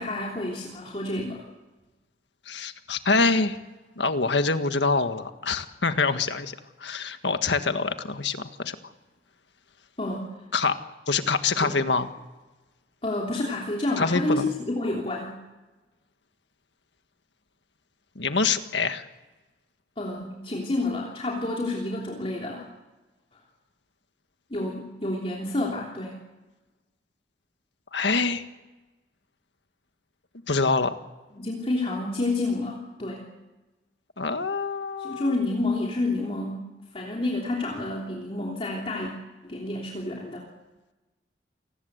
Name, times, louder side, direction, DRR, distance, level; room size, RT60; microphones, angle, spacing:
voice 1, 0.0-1.4 10.0-10.3 11.6-11.8 13.0-15.4 20.0-22.6 24.5-26.2 31.3-33.2 35.0-36.7 36.9-39.1 39.4-40.5, left 2 dB, 35° left, -2 dB, 3.2 m, -29 dB
voice 2, 2.5-3.6 4.0-8.8 10.5-10.8 11.1-12.1 14.0-14.5 18.2-19.1 27.9-28.4 30.5-31.0 34.2-35.3, left 4 dB, 85° left, 8 dB, 1.7 m, -25 dB
28.5 x 19.5 x 8.1 m, 1.2 s
head